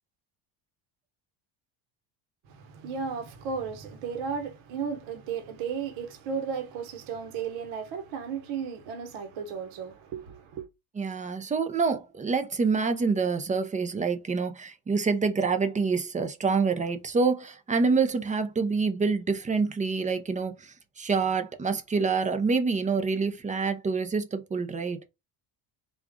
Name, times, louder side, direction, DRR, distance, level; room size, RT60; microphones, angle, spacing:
voice 1, 2.5-10.7, right 6 dB, 70° right, 1.0 m, -34 dB
voice 2, 11.0-25.0, right 4 dB, 15° right, 0.4 m, -27 dB
3.7 x 2.4 x 3.5 m
cardioid pair, 105°, 50 cm